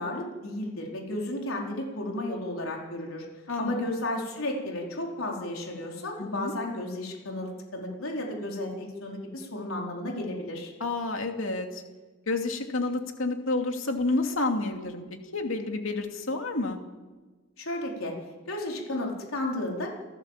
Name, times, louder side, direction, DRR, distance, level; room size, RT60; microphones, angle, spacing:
voice 1, 0.0-3.3 3.6-10.7 17.6-18.1 18.5-19.9, left 1 dB, 85° left, -1 dB, 4.6 m, -33 dB
voice 2, 6.2-6.5 10.8-11.8 12.3-15.0 15.3-16.8, left 2 dB, 70° left, 4 dB, 2.7 m, -29 dB
29.5 x 14.5 x 7.5 m, 1.3 s
head